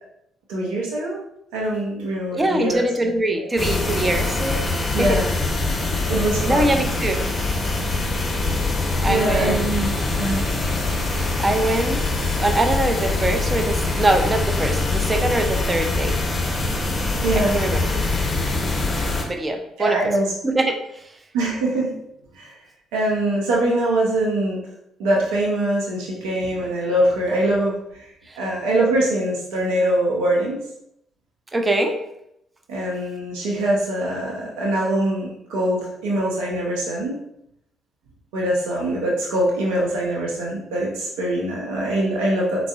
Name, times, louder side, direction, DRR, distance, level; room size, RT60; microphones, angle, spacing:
voice 1, 0.5-1.2 1.5-2.8 4.9-5.3 5.7-6.8 9.1-10.4 17.2-17.6 19.8-20.3 21.3-21.9 22.3-22.5 22.9-24.6 25.0-28.1 28.4-30.6 32.7-37.2 38.3-42.7, right 1 dB, 80° right, -3 dB, 0.6 m, -23 dB
voice 2, 2.3-4.6 5.0-5.2 6.5-7.3 9.0-9.7 11.4-12.0 12.4-16.2 17.5-18.0 19.2-20.0 20.4-20.8 28.3-28.4 31.5-32.0, right 1 dB, 25° right, 5 dB, 0.5 m, -22 dB
sound 1, 3.6-19.2, left 3 dB, 30° left, 0.6 m, -23 dB
3.5 x 2.0 x 2.3 m, 0.77 s
hypercardioid pair, 50°, 0 cm